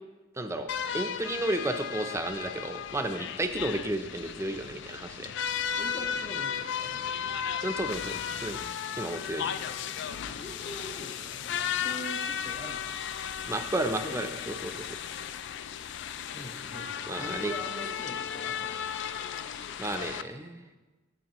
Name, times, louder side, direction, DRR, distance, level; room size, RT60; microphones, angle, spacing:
voice 1, 0.4-0.7 0.9-5.3 7.6-8.6 9.0-9.5 13.5-14.9 17.1-17.5 19.8-20.6, right 1 dB, 15° right, 6 dB, 0.5 m, -32 dB
sound 1, 0.7-20.2, left 8 dB, 60° left, 0.3 m, -35 dB
voice 2, 5.8-7.3 9.4-13.3 13.9-15.3 16.3-19.2, left 1 dB, 30° left, 1 dB, 1.0 m, -45 dB
14.0 x 6.0 x 3.0 m, 1.2 s
head